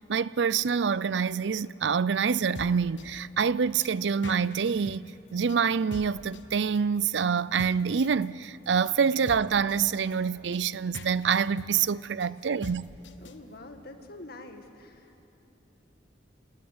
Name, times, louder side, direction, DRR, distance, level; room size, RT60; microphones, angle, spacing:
voice 1, 0.1-12.9, right 6 dB, 70° right, 0.5 m, -26 dB
sound 1, 2.3-13.4, left 2 dB, 85° left, 1.2 m, -44 dB
voice 2, 13.2-15.3, left 2 dB, 60° left, 2.0 m, -46 dB
27.5 x 19.0 x 9.6 m
head